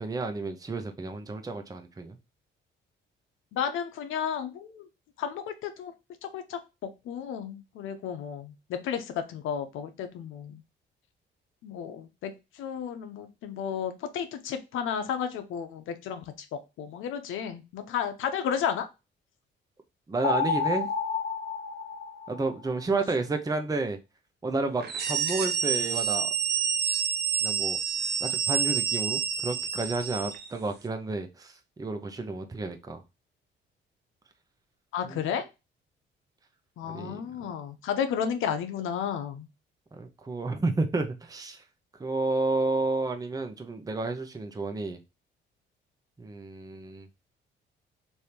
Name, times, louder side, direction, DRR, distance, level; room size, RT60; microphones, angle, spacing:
voice 1, 0.0-2.2 20.1-20.9 22.3-24.0 24.4-26.3 27.4-27.8 28.2-33.0 35.0-35.2 36.9-37.2 39.9-41.6 42.0-45.0 46.2-47.1, right 3 dB, 20° right, 0.7 m, -31 dB
voice 2, 3.5-4.9 5.2-5.9 6.2-6.6 7.0-10.6 11.6-18.9 34.9-35.5 36.8-39.5, left 8 dB, 85° left, 0.8 m, -33 dB
sound 1, 20.2-22.7, left 5 dB, 40° left, 1.2 m, -30 dB
sound 2, 24.8-30.5, right 7 dB, 55° right, 0.8 m, -28 dB
3.4 x 2.7 x 4.4 m
cardioid pair, 90°, 20 cm